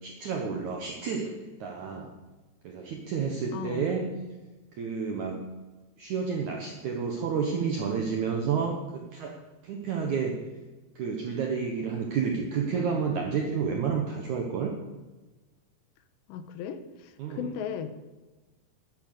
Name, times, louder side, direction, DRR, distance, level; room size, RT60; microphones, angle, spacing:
voice 1, 0.0-1.3 1.6-2.1 2.6-4.1 4.7-5.5 6.0-9.4 9.6-10.5 11.0-14.7 17.2-17.5, right 6 dB, 75° right, 2 dB, 1.8 m, -30 dB
voice 2, 3.5-3.9 16.3-18.1, left 8 dB, 80° left, 10 dB, 3.0 m, -36 dB
12.5 x 10.5 x 6.7 m, 1.2 s
omnidirectional pair, 5.1 m